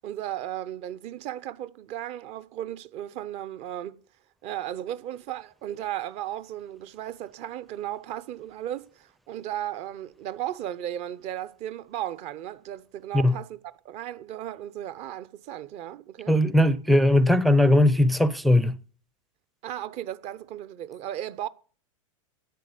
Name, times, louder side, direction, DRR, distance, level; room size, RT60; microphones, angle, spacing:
voice 1, 0.0-4.0 4.4-13.6 13.8-16.3 19.6-21.5, right 12 dB, 40° right, 0.8 m, -35 dB
voice 2, 16.3-18.8, left 1 dB, ahead, 0.5 m, -19 dB
11.0 x 8.4 x 7.8 m
hypercardioid pair, 120°, 17 cm